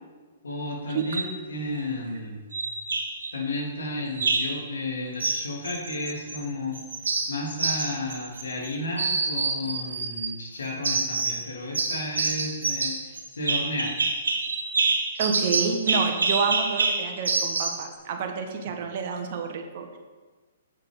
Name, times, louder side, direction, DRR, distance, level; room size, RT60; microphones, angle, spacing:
voice 1, 0.4-2.4 3.3-6.8 7.3-13.9, left 2 dB, 80° left, -1 dB, 2.6 m, -32 dB
sound 1, 1.0-1.3 2.5-3.3 4.1-4.6 5.2-6.4 6.7-8.7 9.0-10.3 10.8-11.4 11.7-17.8, right 3 dB, 80° right, 1.6 m, -27 dB
voice 2, 15.2-20.0, right 5 dB, 50° right, 4 dB, 1.4 m, -29 dB
8.0 x 6.7 x 5.1 m, 1.4 s
hypercardioid pair, 125°, 0 cm